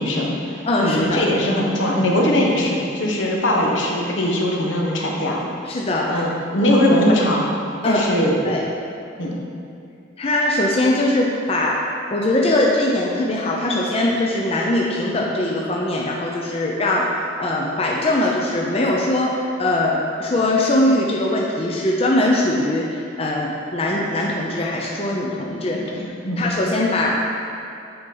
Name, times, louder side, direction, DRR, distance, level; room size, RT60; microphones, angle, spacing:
voice 1, 0.0-5.5 6.1-7.5 7.8-8.4 9.2-9.4 25.7-25.8 26.2-26.5, left 1 dB, 75° left, -2 dB, 1.0 m, -20 dB
voice 2, 0.6-1.2 5.7-6.2 7.8-8.0 8.4-8.6 10.2-11.8 12.1-17.0 17.4-25.8 26.4-27.3, left 1 dB, 30° left, -2 dB, 0.5 m, -21 dB
7.7 x 4.3 x 3.8 m, 2.5 s
head